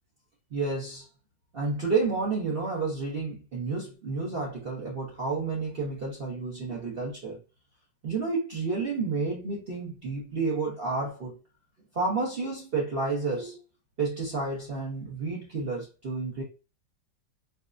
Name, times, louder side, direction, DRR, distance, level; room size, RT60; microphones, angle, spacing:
voice 1, 0.5-1.1 1.5-7.4 8.0-11.4 11.9-13.6 14.0-16.4, right 4 dB, 55° right, 0.6 m, -30 dB
4.6 x 2.0 x 2.4 m
omnidirectional pair, 1.9 m